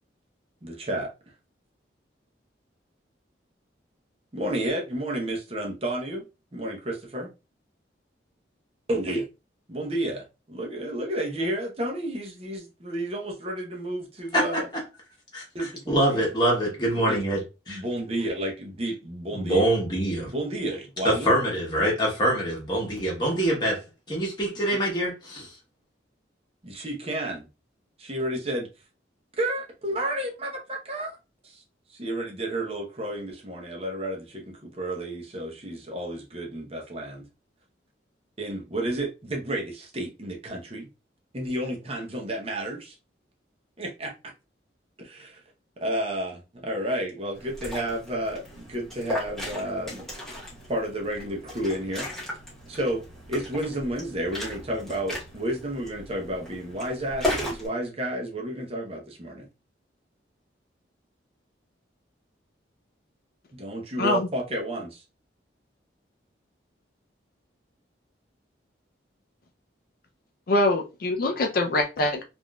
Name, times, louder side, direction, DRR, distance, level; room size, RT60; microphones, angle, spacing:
voice 1, 0.6-1.1 4.3-6.2 6.5-7.3 8.9-9.2 9.7-14.7 15.5-16.2 16.9-17.2 17.7-19.8 20.3-21.3 26.6-27.5 28.0-28.7 29.4-31.2 31.4-31.6 31.9-37.3 38.4-40.9 41.3-42.9 43.8-44.1 45.0-45.4 45.8-50.0 50.7-52.1 52.7-53.0 53.3-59.5 63.5-65.0, right 1 dB, 30° right, 0.7 m, -31 dB
voice 2, 14.3-14.8 15.3-17.8 19.3-20.3 21.0-25.5, right 1 dB, 25° left, 1.1 m, -25 dB
Liquid, 47.3-57.7, left 1 dB, 5° left, 0.9 m, -36 dB
voice 3, 64.0-64.3 70.5-72.2, left 2 dB, 50° left, 0.4 m, -24 dB
3.5 x 2.5 x 2.2 m
head